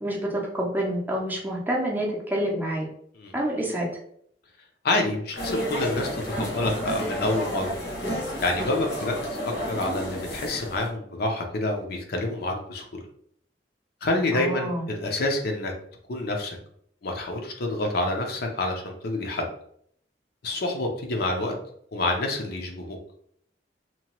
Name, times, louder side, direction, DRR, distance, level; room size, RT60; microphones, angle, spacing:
voice 1, 0.0-2.9 3.3-3.9 14.3-14.8, right 1 dB, 10° right, -2 dB, 0.6 m, -27 dB
voice 2, 4.8-7.8 8.4-13.0 14.0-15.7 16.1-16.6 17.0-19.5 20.4-21.6 21.9-23.0, left 2 dB, 60° left, 2 dB, 0.5 m, -28 dB
sound 1, 5.4-10.9, equal, 85° left, 1.1 m, -31 dB
2.9 x 2.2 x 2.9 m, 0.67 s
head